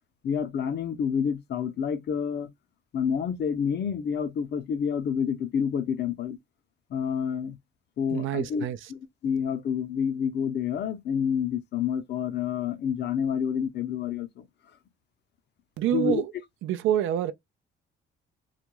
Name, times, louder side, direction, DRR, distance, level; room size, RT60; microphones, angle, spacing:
voice 1, 0.2-2.5 2.9-6.4 6.9-7.6 8.0-8.7 8.9-14.5 15.9-16.2, left 7 dB, 60° left, 0.6 m, -28 dB
voice 2, 8.1-8.9 15.8-16.3 16.6-17.3, right 10 dB, 80° right, 0.4 m, -27 dB
2.4 x 2.2 x 2.9 m
cardioid pair, 90°, 20 cm